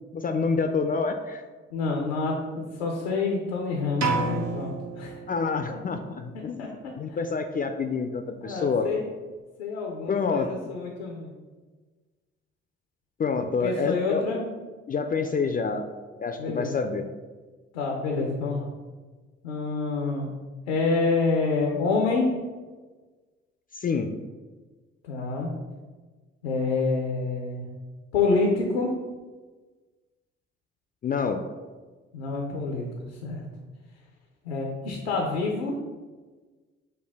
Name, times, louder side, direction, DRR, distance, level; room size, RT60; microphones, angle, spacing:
voice 1, 0.1-1.4 5.3-8.9 10.1-10.5 13.2-14.2 14.9-15.9 16.2-17.1 23.8-24.2 31.0-31.4, left 5 dB, 30° left, 6 dB, 0.3 m, -27 dB
voice 2, 1.7-5.2 6.6-6.7 8.4-9.0 9.6-11.3 13.6-14.4 16.4-16.7 17.7-18.7 19.4-20.3 20.7-22.3 25.0-25.5 26.4-27.7 28.1-28.9 32.1-32.9 33.2-33.4 34.4-35.8, left 3 dB, 90° left, 1 dB, 0.5 m, -27 dB
sound 1, 4.0-5.9, right 3 dB, 55° right, 0.8 m, -30 dB
6.4 x 2.2 x 3.4 m, 1.3 s
hypercardioid pair, 45°, 32 cm